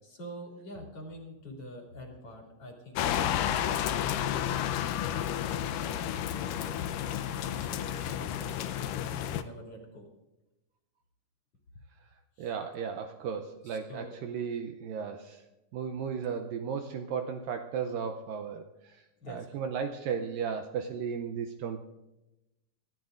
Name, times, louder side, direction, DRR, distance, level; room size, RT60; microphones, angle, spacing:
voice 1, 0.0-3.6 4.0-4.6 5.1-6.8 7.4-10.0 12.4-12.5 13.6-14.4 19.2-19.6, equal, 40° left, -1 dB, 3.2 m, -46 dB
sound 1, 3.0-9.4, left 10 dB, 85° left, 1.9 m, -31 dB
voice 2, 12.4-15.4 15.7-21.8, right 6 dB, 80° right, 6 dB, 2.1 m, -35 dB
28.0 x 13.5 x 2.5 m, 0.98 s
omnidirectional pair, 4.6 m